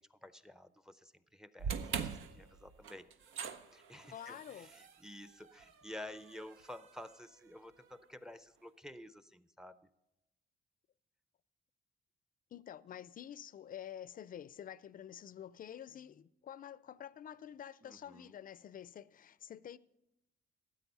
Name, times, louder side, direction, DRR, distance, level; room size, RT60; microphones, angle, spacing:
voice 1, 0.0-3.1 3.7-9.9 17.8-18.4, left 1 dB, 5° right, 0.6 m, -51 dB
sound 1, 1.6-7.9, right 7 dB, 85° right, 0.8 m, -44 dB
voice 2, 4.1-4.7 12.5-19.8, left 10 dB, 45° left, 0.4 m, -49 dB
13.0 x 8.7 x 5.5 m
cardioid pair, 90°, 20 cm